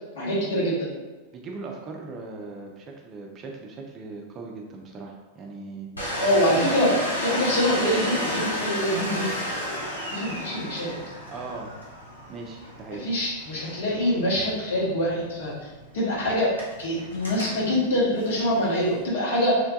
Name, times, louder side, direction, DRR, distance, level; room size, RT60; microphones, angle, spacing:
voice 1, 0.1-0.9 6.2-6.9 7.2-9.3 10.1-11.0 13.0-15.5 15.9-19.6, equal, 60° left, -6 dB, 1.0 m, -24 dB
voice 2, 1.3-6.2 6.5-6.9 11.3-11.7 12.3-13.0, right 3 dB, 30° right, 1 dB, 0.4 m, -39 dB
Domestic sounds home sounds, 6.0-19.1, left 1 dB, 80° left, 0.7 m, -33 dB
3.0 x 2.2 x 2.6 m, 1.3 s
figure-of-eight pair, 90°, 0 cm